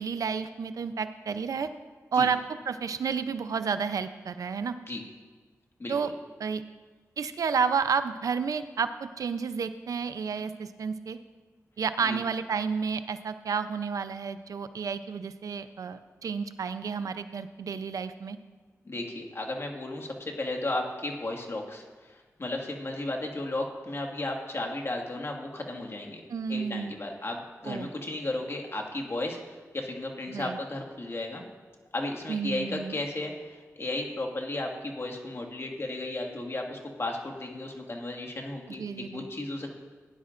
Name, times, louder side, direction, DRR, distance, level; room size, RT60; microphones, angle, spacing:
voice 1, 0.0-1.7 2.1-2.4 2.7-4.8 5.9-6.1 6.4-6.6 7.2-8.9 9.2-11.2 11.8-18.4 26.3-26.9 27.7-27.9 30.3-30.6 32.3-33.0 38.7-39.3, right 6 dB, 80° right, 11 dB, 0.5 m, -31 dB
voice 2, 5.8-6.1 12.0-12.2 18.9-26.2 26.5-29.4 29.7-31.4 31.9-39.7, left 2 dB, 45° left, 2 dB, 1.9 m, -34 dB
17.5 x 10.5 x 2.5 m, 1.4 s
cardioid pair, 50°, 6 cm